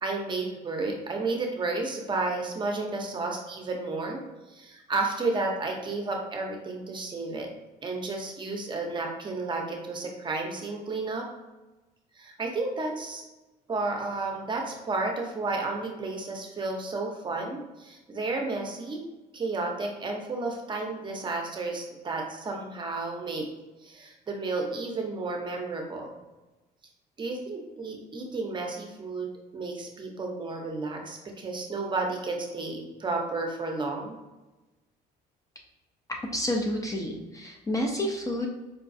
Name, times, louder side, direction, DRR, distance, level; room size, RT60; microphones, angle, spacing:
voice 1, 0.0-4.2 4.5-7.5 7.8-11.2 12.2-13.2 13.7-19.0 19.3-23.5 23.8-26.1 27.2-29.3 29.5-34.1, right 3 dB, 30° right, 1 dB, 0.6 m, -32 dB
voice 2, 36.2-38.5, left 1 dB, 20° left, 1 dB, 0.4 m, -29 dB
4.6 x 2.2 x 2.5 m, 1.1 s
cardioid pair, 110°, 17 cm